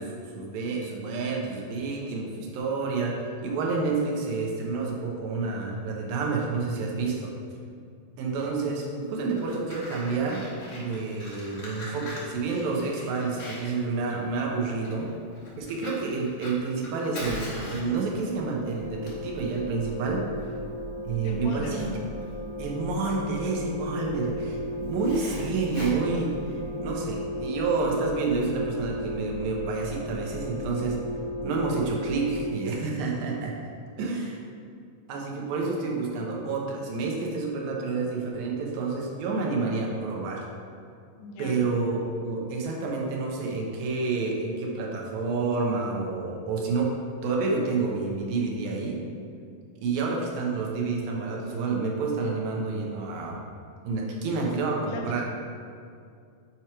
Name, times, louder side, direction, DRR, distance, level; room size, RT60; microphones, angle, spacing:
voice 1, 0.0-3.2 3.4-7.3 8.2-10.4 10.7-15.1 15.6-20.3 21.0-21.9 22.6-31.0 31.4-33.5 34.0-34.4 35.1-40.5 41.4-47.0 47.2-49.0 49.8-53.4 53.8-55.2, right 4 dB, 90° right, -2 dB, 2.7 m, -29 dB
Fire, 9.2-26.9, left 1 dB, 55° left, 1.8 m, -43 dB
sound 1, 17.8-32.5, equal, 75° right, 2.5 m, -35 dB
voice 2, 21.2-21.8 35.4-35.5 41.2-41.6 54.8-55.2, left 3 dB, 85° left, 0 dB, 2.6 m, -39 dB
7.9 x 2.9 x 4.7 m, 2.4 s
omnidirectional pair, 4.1 m